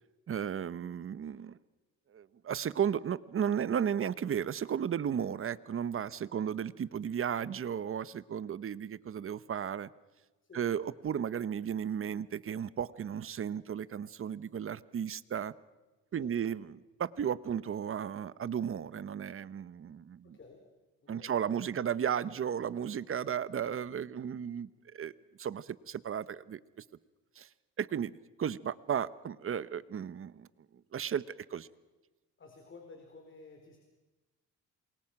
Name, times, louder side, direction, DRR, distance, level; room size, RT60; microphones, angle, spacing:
voice 1, 0.3-1.5 2.1-9.9 10.5-15.5 16.1-16.7 17.0-20.4 21.1-24.7 24.9-25.1 25.4-26.6 27.4-27.5 27.8-30.5 30.9-31.2 31.5-31.7, right 8 dB, 45° right, 17 dB, 1.0 m, -34 dB
voice 2, 20.2-20.7 21.0-21.9 32.4-33.8, left 4 dB, 40° left, 3 dB, 4.3 m, -54 dB
28.0 x 23.0 x 6.0 m, 1.2 s
cardioid pair, 90°, 30 cm